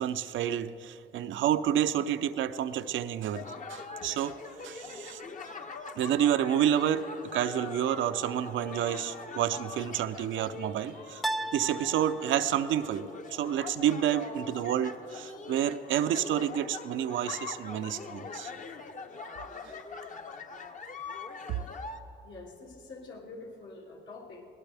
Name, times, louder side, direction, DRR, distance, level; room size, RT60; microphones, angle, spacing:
voice 1, 0.0-4.4 4.6-5.2 6.0-11.2 11.5-18.5, right 10 dB, 80° right, 10 dB, 0.6 m, -29 dB
sound 1, 3.3-22.0, left 4 dB, 40° left, 0.9 m, -43 dB
sound 2, 8.6-9.4 11.2-12.7, right 2 dB, ahead, 0.4 m, -37 dB
voice 2, 22.2-24.5, left 3 dB, 70° left, -2 dB, 2.6 m, -46 dB
21.0 x 18.0 x 3.4 m, 2.9 s
cardioid pair, 90°, 20 cm